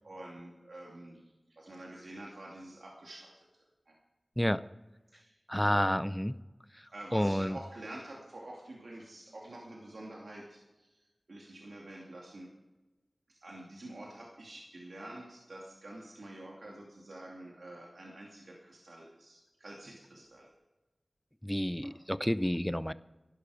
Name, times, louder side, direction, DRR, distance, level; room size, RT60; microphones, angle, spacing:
voice 1, 0.0-3.9 5.1-5.4 6.9-11.0 11.3-12.5 13.3-20.5 21.8-21.9, right 1 dB, 80° right, -3 dB, 2.6 m, -48 dB
voice 2, 5.5-6.4 7.1-7.6 21.4-22.9, equal, 5° left, 15 dB, 0.5 m, -29 dB
16.5 x 11.5 x 5.0 m, 1.1 s
wide cardioid pair, 60°, 0 cm